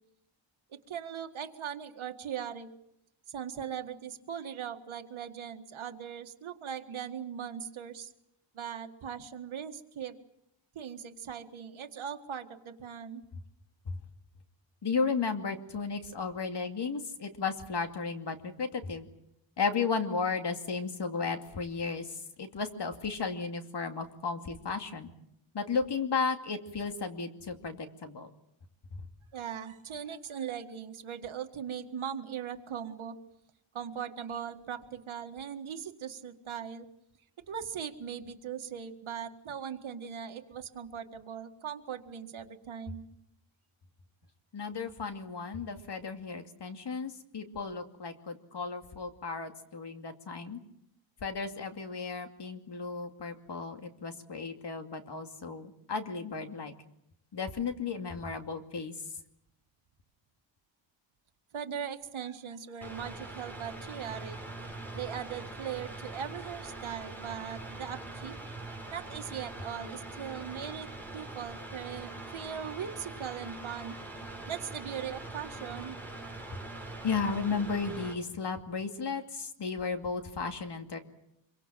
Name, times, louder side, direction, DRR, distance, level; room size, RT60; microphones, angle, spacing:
voice 1, 0.7-2.7 3.3-8.1 8.5-10.2 10.7-13.2 29.3-33.2 33.7-36.9 37.5-43.1 61.5-64.4 64.9-68.4 68.9-74.0 74.5-76.0, right 8 dB, 85° right, 6 dB, 2.0 m, -39 dB
voice 2, 14.8-19.1 19.6-25.1 25.5-28.3 28.9-29.0 44.5-50.6 51.2-56.7 57.3-58.9 77.0-81.0, left 5 dB, 60° left, 6 dB, 2.5 m, -34 dB
Mechanical fan, 62.8-78.1, right 2 dB, 5° left, 6.1 m, -43 dB
25.5 x 23.5 x 7.5 m, 0.77 s
wide cardioid pair, 140°, 47 cm